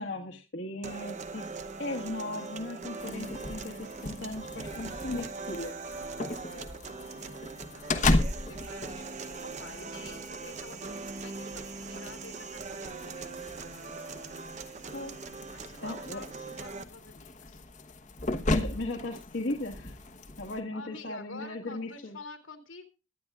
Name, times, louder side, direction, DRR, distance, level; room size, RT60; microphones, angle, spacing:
voice 1, 0.0-5.8 14.9-15.1 15.8-16.2 18.5-20.0 20.4-22.2, left 2 dB, 60° left, 0 dB, 1.6 m, -37 dB
sound 1, 0.8-16.8, right 4 dB, 35° right, 0.8 m, -41 dB
sound 2, 3.0-20.6, left 2 dB, 35° left, 1.1 m, -36 dB
voice 2, 6.3-13.8 15.5-17.7 20.7-22.9, left 3 dB, 75° left, 6 dB, 2.7 m, -49 dB
22.0 x 9.8 x 2.4 m, 0.30 s
head